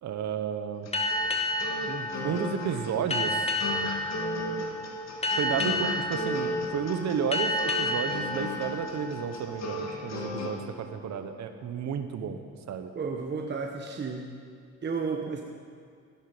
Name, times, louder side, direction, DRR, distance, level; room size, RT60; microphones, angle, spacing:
voice 1, 0.0-0.9 2.2-3.5 5.4-12.4 12.7-12.9, right 7 dB, 65° right, 8 dB, 1.1 m, -32 dB
sound 1, 0.9-10.5, left 1 dB, 60° left, 2.4 m, -35 dB
sound 2, 0.9-10.1, left 1 dB, 20° left, 1.6 m, -31 dB
voice 2, 1.9-2.4 12.9-14.3 14.8-15.4, right 5 dB, 35° right, 2 dB, 1.1 m, -33 dB
14.0 x 10.5 x 5.1 m, 2.2 s
cardioid pair, 90°, 30 cm